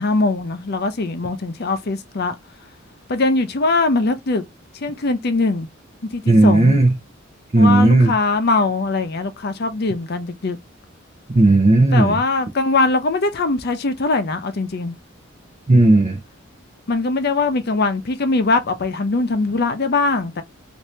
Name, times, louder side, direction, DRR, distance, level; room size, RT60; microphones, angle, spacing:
voice 1, 0.0-2.4 3.1-4.4 4.8-5.7 6.1-6.8 7.6-10.6 11.9-14.9 16.9-20.4, left 3 dB, 55° left, 0.6 m, -21 dB
voice 2, 6.3-6.9 7.5-8.1 11.3-12.1 15.7-16.2, right 2 dB, 35° right, 0.6 m, -13 dB
2.8 x 2.6 x 3.2 m
head